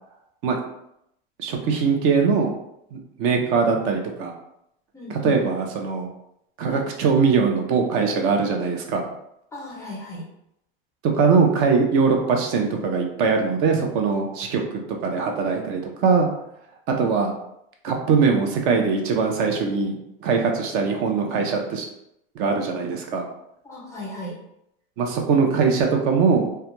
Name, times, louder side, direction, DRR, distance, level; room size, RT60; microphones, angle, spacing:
voice 1, 1.4-2.5 2.9-4.3 5.1-6.1 6.6-9.1 11.1-14.6 15.0-16.3 17.0-17.3 17.8-21.9 22.4-23.2 25.0-26.5, right 5 dB, 45° right, 2 dB, 0.5 m, -21 dB
voice 2, 4.9-5.4 9.5-10.3 17.0-17.2 23.6-24.4, left 2 dB, 10° left, -4 dB, 0.4 m, -35 dB
2.3 x 2.1 x 2.9 m, 0.78 s
supercardioid pair, 145°, 30 cm